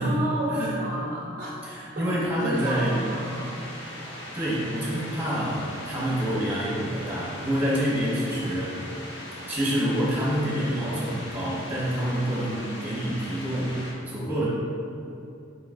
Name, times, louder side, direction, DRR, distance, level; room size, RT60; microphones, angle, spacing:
voice 1, 0.0-1.6 1.9-3.5, right 1 dB, 45° right, -4 dB, 0.4 m, -31 dB
voice 2, 1.6-3.0 4.3-8.8 9.5-13.8 14.1-14.5, equal, 10° right, -7 dB, 0.9 m, -27 dB
sound 1, 2.5-13.9, left 1 dB, 60° left, 0.9 m, -40 dB
4.8 x 3.8 x 2.5 m, 2.7 s
head